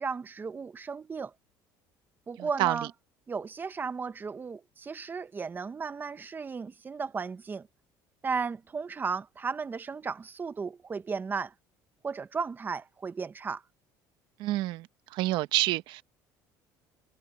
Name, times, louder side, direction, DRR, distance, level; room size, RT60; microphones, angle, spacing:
voice 1, 0.0-1.3 2.3-2.9 3.3-7.7 8.2-11.5 12.0-13.6, right 5 dB, 25° right, 1.1 m, -35 dB
voice 2, 14.4-14.9 15.1-16.0, right 17 dB, 70° right, 1.1 m, -27 dB
cardioid pair, 120°, 8 cm